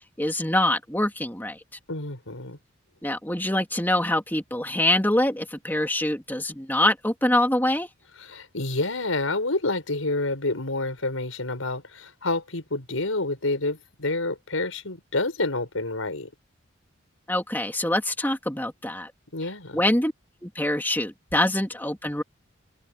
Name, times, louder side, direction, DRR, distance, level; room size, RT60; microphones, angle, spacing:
voice 1, 0.2-1.6 3.0-7.9 17.3-19.1 19.7-20.1 20.4-22.2, left 1 dB, 10° left, 2.7 m, -24 dB
voice 2, 1.9-2.6 8.2-16.3 19.3-19.8, left 2 dB, 85° left, 5.1 m, -28 dB
head